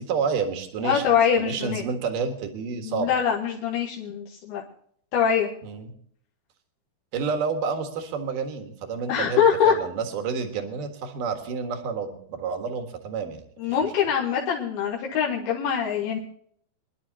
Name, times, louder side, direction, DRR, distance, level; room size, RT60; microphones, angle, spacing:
voice 1, 0.0-1.0 1.4-3.1 5.6-5.9 7.1-13.4, right 5 dB, 60° right, 5 dB, 2.9 m, -29 dB
voice 2, 0.8-1.8 2.8-4.6 5.1-5.5 9.1-9.7 13.6-16.2, left 7 dB, 70° left, -4 dB, 3.3 m, -23 dB
25.0 x 11.0 x 2.9 m, 0.63 s
omnidirectional pair, 4.7 m